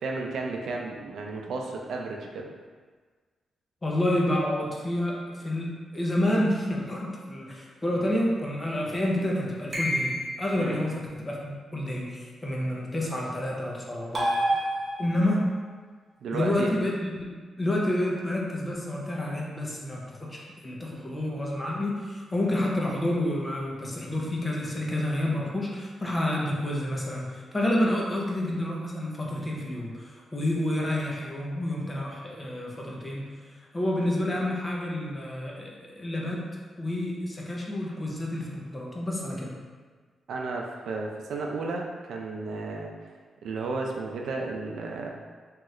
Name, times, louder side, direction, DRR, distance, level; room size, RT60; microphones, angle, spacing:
voice 1, 0.0-2.5 10.6-10.8 16.2-16.7 40.3-42.9 43.4-45.1, right 3 dB, 80° right, 0 dB, 0.4 m, -33 dB
voice 2, 3.8-14.6 15.0-15.5 16.3-17.3 17.6-33.3 33.7-36.5 36.8-39.5, left 1 dB, 15° left, -3 dB, 0.5 m, -29 dB
sound 1, 9.7-10.6 14.1-15.4, right 1 dB, 35° right, 0.7 m, -28 dB
2.8 x 2.4 x 3.1 m, 1.5 s
wide cardioid pair, 150°, 0 cm